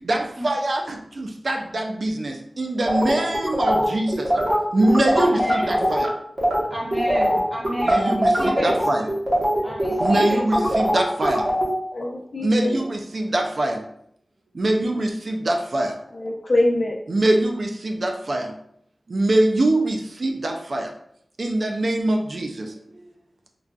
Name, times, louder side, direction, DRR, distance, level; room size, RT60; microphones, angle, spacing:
voice 1, 0.1-0.8 1.2-2.3 2.6-4.1 4.7-6.1 7.9-8.3 8.6-9.0 10.0-11.4 12.4-13.8 14.6-15.9 17.1-18.5 19.1-20.9 21.4-22.5, right 1 dB, 60° right, 0.4 m, -23 dB
sound 1, 2.8-6.1 6.4-6.6 6.9-11.7, equal, 40° right, 1.0 m, -21 dB
voice 2, 5.2-5.8 6.7-8.7 9.6-10.4, equal, 15° right, 0.9 m, -30 dB
voice 3, 11.9-12.8 16.1-17.0, left 1 dB, 55° left, 0.6 m, -24 dB
3.9 x 2.3 x 2.3 m
wide cardioid pair, 90°, 0 cm